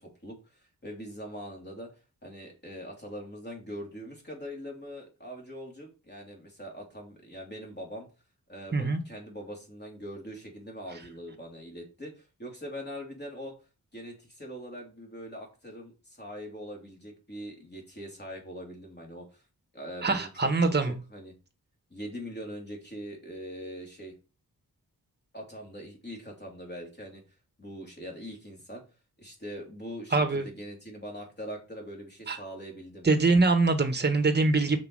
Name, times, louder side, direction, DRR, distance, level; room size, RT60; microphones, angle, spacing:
voice 1, 0.0-1.9 2.2-8.1 8.5-13.5 13.9-19.4 19.7-21.3 21.9-24.1 25.3-27.2 27.6-28.8 29.2-33.1, equal, 30° left, 3.1 m, -42 dB
voice 2, 20.0-20.9 30.1-30.4 32.3-32.4 33.0-34.8, right 3 dB, 30° right, 1.3 m, -23 dB
5.9 x 4.7 x 4.8 m
wide cardioid pair, 90°, 36 cm